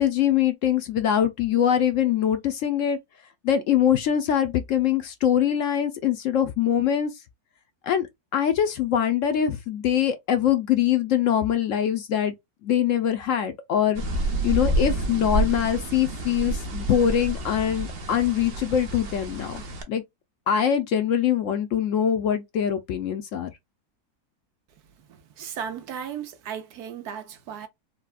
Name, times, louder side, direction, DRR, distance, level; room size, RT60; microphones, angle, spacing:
voice 1, 0.0-3.0 3.4-7.1 7.8-8.1 8.3-12.3 12.6-14.0 14.4-19.6 19.9-20.0 20.5-23.5, left 9 dB, 70° left, 0.8 m, -23 dB
sound 1, 13.9-19.8, right 1 dB, 50° right, 0.8 m, -28 dB
voice 2, 25.1-27.7, right 8 dB, 85° right, 1.3 m, -36 dB
4.0 x 2.2 x 2.3 m
omnidirectional pair, 1.6 m